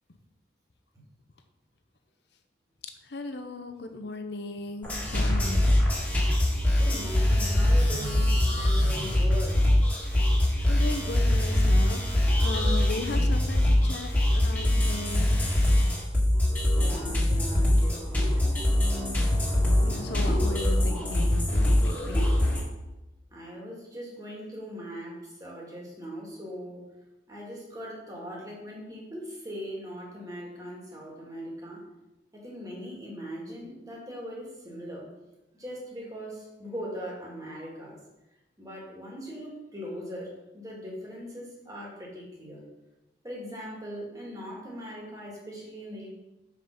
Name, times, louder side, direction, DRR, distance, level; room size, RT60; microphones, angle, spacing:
voice 1, 3.1-5.7 10.7-15.3 19.8-22.2, left 2 dB, 65° left, 7 dB, 0.8 m, -36 dB
sound 1, 4.8-22.6, left 1 dB, 10° left, 1.9 m, -23 dB
voice 2, 6.7-9.6 16.7-18.3 23.3-26.9 27.3-31.8 32.3-35.1 35.6-38.0 38.6-42.7 43.2-46.1, equal, 20° right, -4 dB, 2.0 m, -40 dB
5.3 x 5.3 x 5.9 m, 0.99 s
head